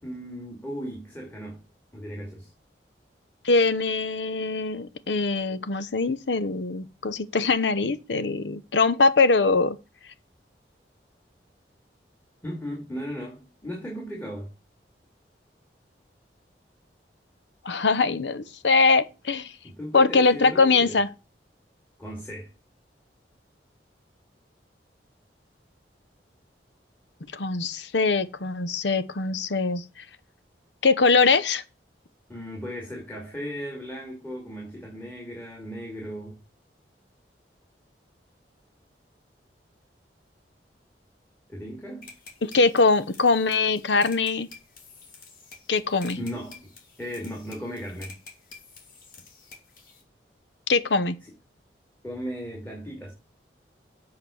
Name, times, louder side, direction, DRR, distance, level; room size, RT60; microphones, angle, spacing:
voice 1, 0.0-1.6 1.9-2.5 12.4-14.5 19.6-21.0 22.0-22.5 32.3-36.4 41.5-42.1 46.2-46.7 47.0-48.2 52.0-53.1, equal, 10° left, 2.3 m, -36 dB
voice 2, 3.4-9.8 17.6-19.5 19.9-21.1 27.3-29.8 30.8-31.6 42.4-44.5 45.7-46.2 50.7-51.2, left 4 dB, 85° left, 0.8 m, -22 dB
sound 1, 42.0-50.0, left 4 dB, 50° left, 2.8 m, -49 dB
8.0 x 4.9 x 7.0 m
head